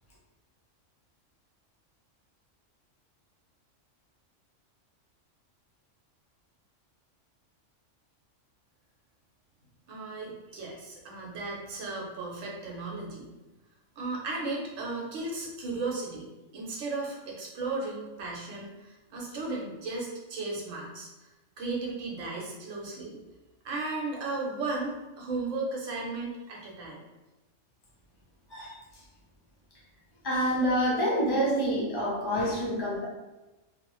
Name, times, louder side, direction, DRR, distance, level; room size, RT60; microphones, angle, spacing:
voice 1, 9.9-13.3 14.0-21.3 21.6-23.2 23.6-27.0, right 3 dB, 80° right, -2 dB, 1.1 m, -35 dB
voice 2, 30.2-33.1, equal, 30° left, -5 dB, 0.5 m, -27 dB
2.7 x 2.0 x 2.9 m, 1.1 s
omnidirectional pair, 1.3 m